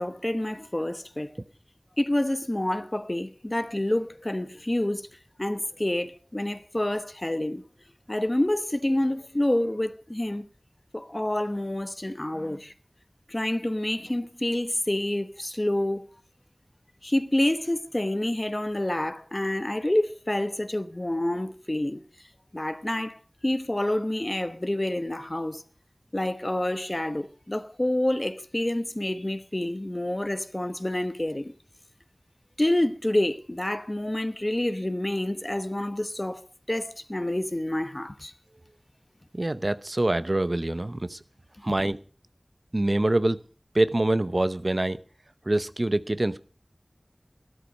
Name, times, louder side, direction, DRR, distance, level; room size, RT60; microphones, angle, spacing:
voice 1, 0.0-1.4 2.0-5.1 5.4-7.6 8.1-10.4 10.9-12.7 13.3-16.0 17.0-22.0 22.5-25.6 26.1-31.5 32.6-36.4 36.7-38.3, left 1 dB, 35° left, 1.0 m, -28 dB
voice 2, 39.3-41.2 41.6-42.0 42.7-43.4 43.7-45.0 45.5-46.4, right 1 dB, 55° right, 0.8 m, -25 dB
13.5 x 12.5 x 5.3 m
wide cardioid pair, 45°, 0 cm